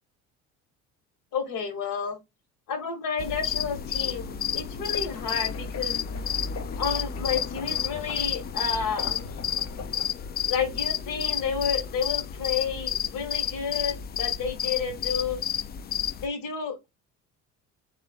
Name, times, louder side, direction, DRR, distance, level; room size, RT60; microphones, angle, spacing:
voice 1, 1.3-2.2 2.7-6.0 6.8-9.3 10.5-15.4 16.2-16.9, left 6 dB, 65° left, 1.9 m, -31 dB
sound 1, 3.2-16.3, left 8 dB, 30° left, 0.4 m, -31 dB
sound 2, 4.8-10.1, left 5 dB, 45° left, 1.0 m, -42 dB
3.3 x 3.0 x 3.7 m
supercardioid pair, 80°, 35 cm